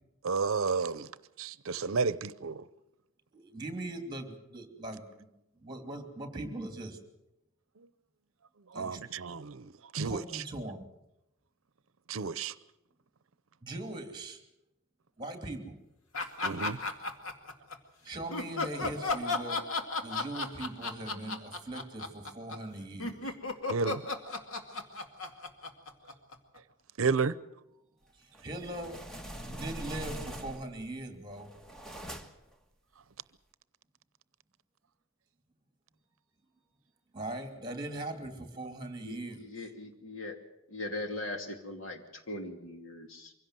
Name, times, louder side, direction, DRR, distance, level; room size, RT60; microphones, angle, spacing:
voice 1, 0.2-1.1 1.4-2.6 8.7-10.4 12.1-12.5 16.4-16.8 23.7-24.0 27.0-27.3, right 4 dB, 80° right, 0.7 m, -31 dB
voice 2, 3.3-5.3 5.6-7.0 8.7-9.0 10.0-10.9 13.6-14.4 15.2-15.8 18.0-19.7 20.0-23.3 28.1-29.0 29.5-31.6 37.1-39.4, right 2 dB, 20° right, 2.8 m, -40 dB
sound 1, 16.1-17.8 18.3-26.6, left 3 dB, 85° left, 2.2 m, -34 dB
sound 2, 28.3-30.8 31.3-32.5, equal, 5° left, 1.4 m, -43 dB
voice 3, 39.0-40.4 40.7-43.3, left 2 dB, 65° left, 2.7 m, -40 dB
24.0 x 16.5 x 7.7 m
head